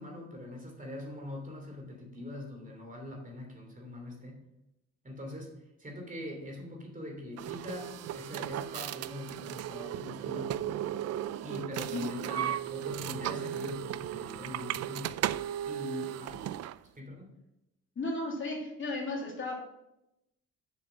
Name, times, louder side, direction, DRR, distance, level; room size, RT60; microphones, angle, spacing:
voice 1, 0.0-4.4 5.0-10.7 11.4-15.2 15.6-16.5 16.8-17.3, left 1 dB, 25° right, 2 dB, 2.9 m, -43 dB
sound 1, 7.4-16.8, right 11 dB, 55° right, 0.4 m, -36 dB
voice 2, 18.0-19.6, left 2 dB, 40° left, -1 dB, 2.7 m, -34 dB
7.3 x 6.7 x 5.9 m, 0.87 s
cardioid pair, 90°, 30 cm